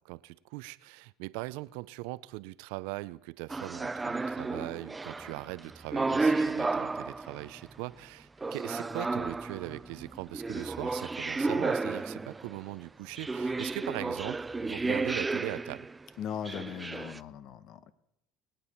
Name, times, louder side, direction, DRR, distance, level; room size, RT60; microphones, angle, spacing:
voice 1, 0.0-15.9, right 21 dB, 80° right, 18 dB, 0.4 m, -40 dB
sound 1, 3.5-7.7 8.4-12.6 13.2-16.0 16.5-17.2, right 3 dB, 15° right, 0.4 m, -32 dB
voice 2, 16.2-17.9, left 9 dB, 60° left, 15 dB, 0.9 m, -39 dB
23.0 x 8.8 x 4.3 m, 0.83 s
supercardioid pair, 100°, 0 cm